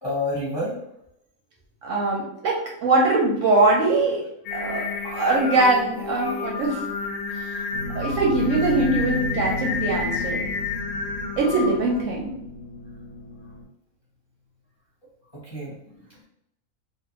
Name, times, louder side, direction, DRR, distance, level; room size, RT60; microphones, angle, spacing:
voice 1, 0.0-0.8 8.0-8.1 15.3-16.2, left 1 dB, 20° left, -8 dB, 0.8 m, -30 dB
voice 2, 1.8-2.6 2.8-4.2 4.5-6.8 7.3-7.5 7.9-10.4 11.4-12.3, right 2 dB, 70° right, -2 dB, 0.8 m, -22 dB
Singing, 4.5-12.0, left 4 dB, 85° left, 1.1 m, -31 dB
sound 1, 7.7-13.7, left 1 dB, 70° left, 0.8 m, -33 dB
2.5 x 2.4 x 2.9 m, 0.80 s
omnidirectional pair, 1.6 m